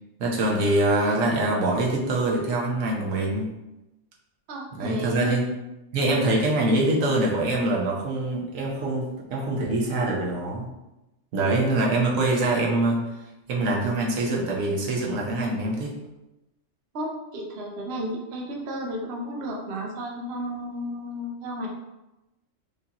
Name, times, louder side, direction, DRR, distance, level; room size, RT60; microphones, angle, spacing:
voice 1, 0.2-3.5 4.8-5.4 5.9-10.7 11.3-13.0 13.5-15.9, right 2 dB, 90° right, -2 dB, 1.3 m, -24 dB
voice 2, 4.5-5.3 16.9-21.7, equal, 60° right, 0 dB, 0.9 m, -33 dB
4.9 x 2.7 x 2.8 m, 0.97 s
omnidirectional pair, 1.3 m